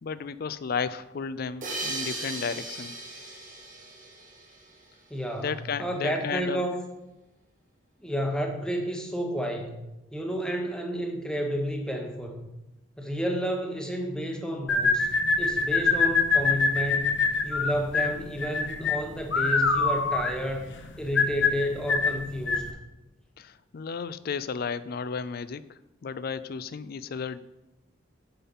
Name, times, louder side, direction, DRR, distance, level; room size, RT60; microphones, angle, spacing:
voice 1, 0.0-2.9 5.4-6.6 23.4-27.4, left 5 dB, 50° left, 15 dB, 0.4 m, -33 dB
sound 1, 1.6-4.9, right 2 dB, 40° right, 2.0 m, -37 dB
voice 2, 5.1-6.8 8.0-9.8 10.1-12.5 13.0-15.1 15.4-17.1 17.4-20.7 21.0-22.7, equal, 5° left, 3 dB, 1.1 m, -31 dB
sound 2, 14.7-22.7, left 4 dB, 65° left, 0.8 m, -25 dB
8.4 x 5.4 x 5.6 m, 0.98 s
head